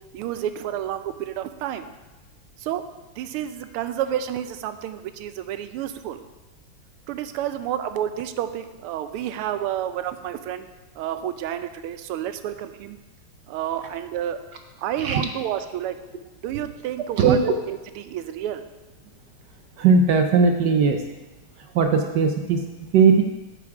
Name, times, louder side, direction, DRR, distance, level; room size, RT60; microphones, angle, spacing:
voice 1, 0.1-1.9 2.6-2.8 3.2-6.2 7.1-10.7 11.0-13.0 13.5-14.4 14.8-15.9 16.4-18.6, right 11 dB, 90° right, 10 dB, 1.5 m, -30 dB
voice 2, 17.2-17.5 19.8-21.0 21.7-23.2, right 5 dB, 70° right, 5 dB, 1.0 m, -18 dB
9.4 x 7.3 x 4.8 m, 1.1 s
omnidirectional pair, 2.4 m